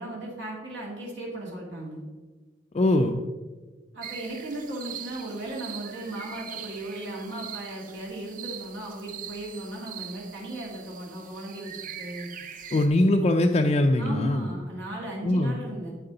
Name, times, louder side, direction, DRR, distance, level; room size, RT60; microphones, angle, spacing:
voice 1, 0.0-2.0 3.9-12.3 14.0-15.9, right 1 dB, 75° right, -3 dB, 2.0 m, -36 dB
voice 2, 2.7-3.2 12.7-14.5 15.2-15.6, left 1 dB, 35° left, 3 dB, 0.4 m, -22 dB
sound 1, 4.0-12.9, right 9 dB, 45° right, 0.6 m, -42 dB
7.9 x 7.9 x 3.9 m, 1.3 s
head